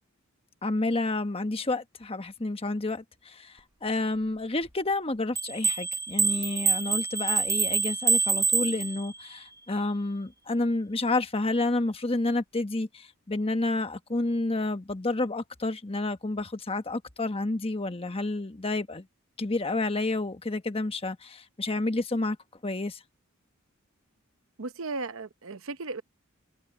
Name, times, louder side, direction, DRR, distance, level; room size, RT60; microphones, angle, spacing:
voice 1, 0.6-19.1 19.4-22.4 22.6-23.0, left 2 dB, 25° left, 1.1 m, -30 dB
sound 1, 5.3-9.3, right 4 dB, 15° right, 0.6 m, -26 dB
voice 2, 24.6-26.0, right 3 dB, 70° right, 0.9 m, -35 dB
head